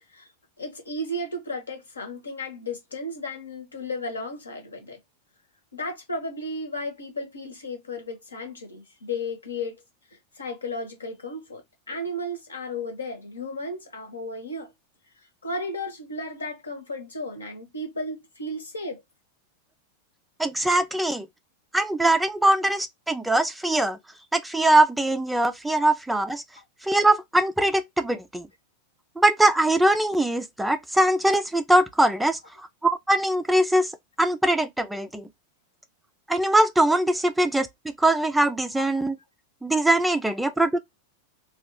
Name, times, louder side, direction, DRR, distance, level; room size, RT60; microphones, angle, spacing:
voice 1, 0.6-5.0 5.7-9.8 10.4-14.7 15.4-19.0 25.8-25.9 26.6-26.7 38.7-38.9, left 1 dB, 75° left, 1.0 m, -34 dB
voice 2, 20.4-21.3 21.7-24.0 24.3-26.4 26.8-28.5 29.2-32.4 32.8-33.9 34.2-35.2 36.3-37.7 38.0-39.2 39.6-40.8, right 1 dB, 5° right, 0.4 m, -22 dB
2.9 x 2.3 x 2.8 m
figure-of-eight pair, 90°, 0 cm